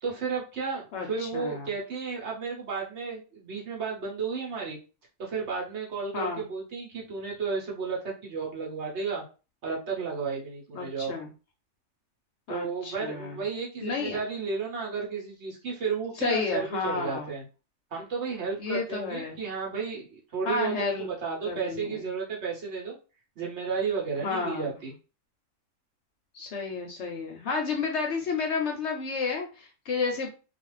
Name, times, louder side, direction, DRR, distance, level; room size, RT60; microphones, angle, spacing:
voice 1, 0.0-4.8 5.2-9.2 9.6-11.2 12.5-17.4 17.9-23.0 23.4-24.9, right 5 dB, 60° right, -2 dB, 1.1 m, -33 dB
voice 2, 0.9-1.7 6.1-6.4 10.7-11.3 12.5-13.4 13.8-14.2 16.2-17.3 18.6-19.4 20.4-21.1 21.4-22.1 24.2-24.8 26.3-30.3, left 4 dB, 65° left, 2 dB, 0.8 m, -31 dB
2.4 x 2.4 x 3.1 m, 0.33 s
omnidirectional pair, 1.5 m